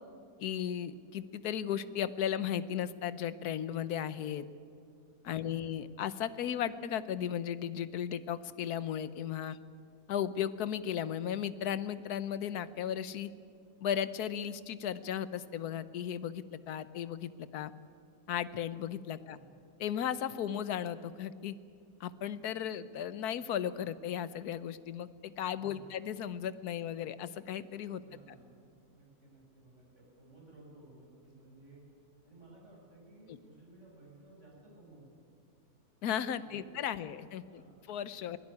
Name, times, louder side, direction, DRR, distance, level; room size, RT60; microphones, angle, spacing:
voice 1, 0.4-4.4 5.2-9.6 10.1-13.3 13.8-17.7 18.3-19.4 19.8-21.5 22.0-28.0 33.3-33.4 36.0-37.6 37.9-38.4, left 9 dB, 75° left, 15 dB, 1.3 m, -35 dB
voice 2, 5.4-5.7 19.2-19.5 25.6-26.0 28.0-28.6 28.9-31.8 32.2-35.1 36.3-37.1 37.4-37.7 38.2-38.4, right 2 dB, 45° right, -2 dB, 6.9 m, -57 dB
23.5 x 17.0 x 9.8 m, 2.3 s
omnidirectional pair, 1.7 m